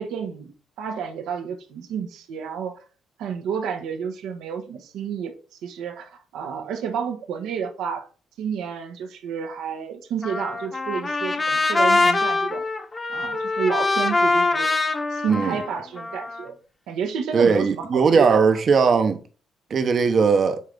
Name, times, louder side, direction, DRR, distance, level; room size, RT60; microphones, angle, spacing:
voice 1, 0.0-2.8 3.2-5.3 5.6-8.1 8.4-12.6 13.1-14.7 15.1-16.6 16.9-18.4, right 7 dB, 90° right, 1.1 m, -30 dB
Trumpet, 10.2-16.5, left 3 dB, 25° left, 1.1 m, -23 dB
voice 2, 17.3-19.2 19.7-20.6, right 5 dB, 50° right, 0.9 m, -19 dB
8.4 x 3.3 x 3.8 m
cardioid pair, 90°, 0 cm